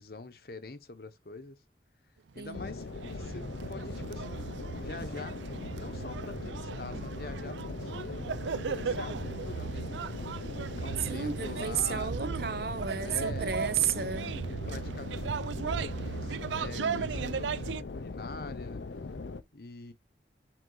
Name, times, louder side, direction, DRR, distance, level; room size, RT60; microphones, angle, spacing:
voice 1, 0.0-1.6 2.3-10.5 10.8-12.1 12.9-13.6 14.7-19.1 19.5-19.9, left 3 dB, 55° left, 0.9 m, -45 dB
sound 1, 2.4-17.8, right 6 dB, 85° right, 0.4 m, -37 dB
sound 2, 2.5-19.4, left 3 dB, 80° left, 0.6 m, -40 dB
voice 2, 11.1-14.4 16.7-17.1, right 7 dB, 55° right, 0.9 m, -33 dB
7.8 x 3.6 x 3.9 m
head